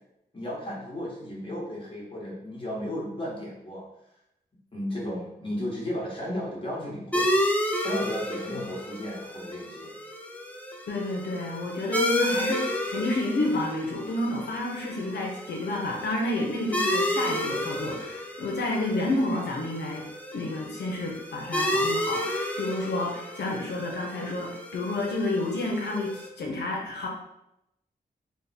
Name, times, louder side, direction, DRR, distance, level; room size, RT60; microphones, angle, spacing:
voice 1, 0.3-3.8 4.7-7.3 7.8-9.9, left 1 dB, 30° left, -4 dB, 1.2 m, -34 dB
sound 1, 7.1-26.3, left 1 dB, 10° left, 0.5 m, -31 dB
voice 2, 10.9-20.0 20.3-27.1, left 2 dB, 90° left, -1 dB, 0.7 m, -30 dB
3.5 x 2.1 x 4.1 m, 0.84 s
wide cardioid pair, 105°, 17 cm